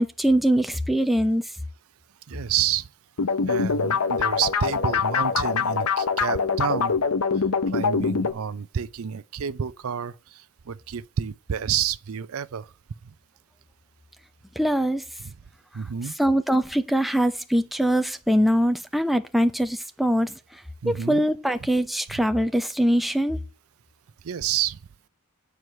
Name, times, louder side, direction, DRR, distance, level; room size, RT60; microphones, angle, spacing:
voice 1, 0.0-1.4 14.6-15.0 16.2-23.4, equal, ahead, 0.6 m, -23 dB
voice 2, 2.3-2.9 3.4-7.0 7.3-12.7 13.0-13.1 15.2-15.3 15.7-16.1 20.8-21.2 22.1-22.2 24.2-24.8, right 8 dB, 75° right, 0.5 m, -29 dB
sound 1, 3.2-8.3, left 5 dB, 85° left, 0.8 m, -24 dB
9.6 x 4.6 x 6.5 m
head